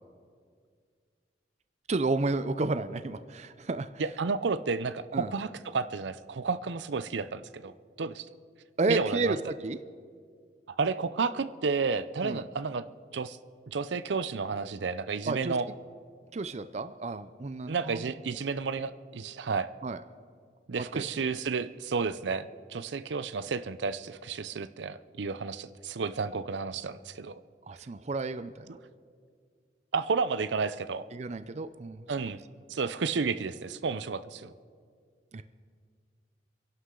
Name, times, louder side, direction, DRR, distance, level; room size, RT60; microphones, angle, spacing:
voice 1, 1.9-3.9 5.1-5.3 8.8-9.8 12.2-12.5 15.3-15.6 16.3-18.1 19.8-20.0 20.8-21.0 27.7-28.8 31.1-32.1 35.3-35.4, right 3 dB, 40° right, 11 dB, 0.5 m, -31 dB
voice 2, 4.0-7.7 8.0-8.3 8.9-9.3 10.7-12.9 13.1-13.4 13.7-15.7 17.7-19.7 20.7-27.4 29.9-31.0 32.1-32.4 32.7-34.5, right 4 dB, 85° right, 13 dB, 0.5 m, -31 dB
28.0 x 11.5 x 3.8 m, 2.1 s
head